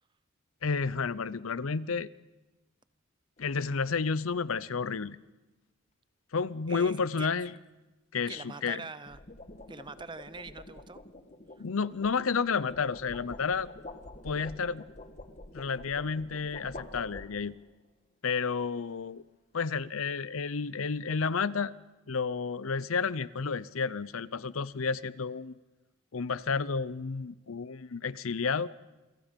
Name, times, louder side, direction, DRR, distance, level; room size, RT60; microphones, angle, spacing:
voice 1, 0.6-2.1 3.4-5.2 6.3-7.5 8.1-8.8 11.6-13.7 14.2-14.9 15.5-17.6 18.2-19.2 19.5-21.7 22.1-25.5 26.1-28.7, left 5 dB, 85° left, 17 dB, 0.7 m, -31 dB
sound 1, 3.4-3.7 8.8-17.7, left 2 dB, 35° left, 1.3 m, -48 dB
voice 2, 6.7-7.3 8.3-9.2 9.7-11.0, right 4 dB, 20° right, 14 dB, 0.7 m, -43 dB
28.0 x 23.5 x 5.3 m, 1.1 s
head